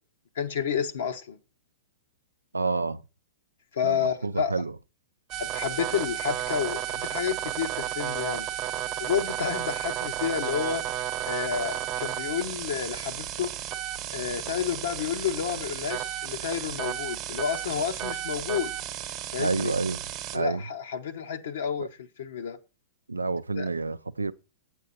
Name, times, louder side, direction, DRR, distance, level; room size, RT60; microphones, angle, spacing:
voice 1, 0.4-1.4 3.7-4.5 5.4-8.5 9.0-10.8 11.3-13.5 14.1-18.7 19.3-19.7 20.3-21.9 22.2-22.6 23.6-23.7, left 8 dB, 65° left, 0.9 m, -30 dB
voice 2, 2.5-3.0 3.8-4.7 19.4-20.0 20.3-20.6 21.8-21.9 23.1-24.3, right 3 dB, 90° right, 0.4 m, -28 dB
sound 1, 5.3-20.4, right 12 dB, 35° right, 1.0 m, -33 dB
8.3 x 7.2 x 4.2 m
figure-of-eight pair, 110°, 0 cm